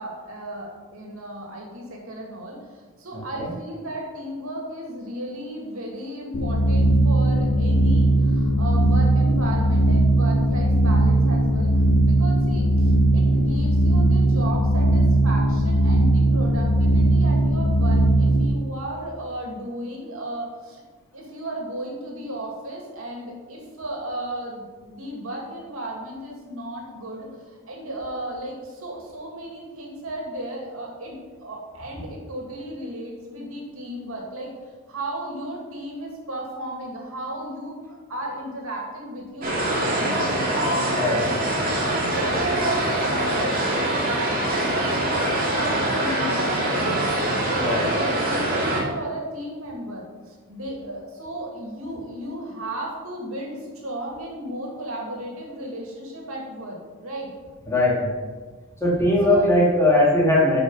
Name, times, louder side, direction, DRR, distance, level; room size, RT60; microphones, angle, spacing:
voice 1, 0.0-2.6 3.0-11.7 12.1-20.8 21.1-34.5 34.9-40.3 40.8-41.6 41.9-43.6 44.0-57.3 59.2-59.4, right 1 dB, 75° right, -1 dB, 2.4 m, -34 dB
voice 2, 3.1-3.5 41.0-41.2 47.6-47.9 57.7-58.1 58.8-60.6, left 1 dB, 15° left, -6 dB, 2.7 m, -19 dB
sound 1, 6.3-18.5, right 1 dB, 85° left, 1.0 m, -19 dB
sound 2, 39.4-48.8, right 1 dB, 40° right, 2.4 m, -24 dB
10.5 x 5.5 x 5.6 m, 1.4 s
head